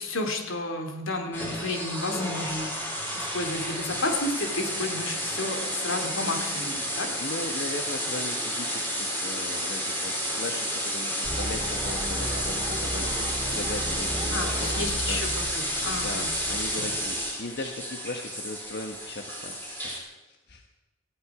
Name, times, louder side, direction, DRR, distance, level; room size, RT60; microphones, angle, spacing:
voice 1, 0.0-7.1 14.3-16.3, left 2 dB, 80° left, 4 dB, 2.9 m, -32 dB
sound 1, 1.3-20.0, equal, 10° left, 4.4 m, -31 dB
voice 2, 7.2-15.2 15.9-19.9 20.2-20.6, left 2 dB, 55° left, 3 dB, 1.3 m, -38 dB
sound 2, 11.2-17.2, right 1 dB, 20° right, 2.4 m, -35 dB
18.5 x 15.0 x 5.0 m, 1.2 s
head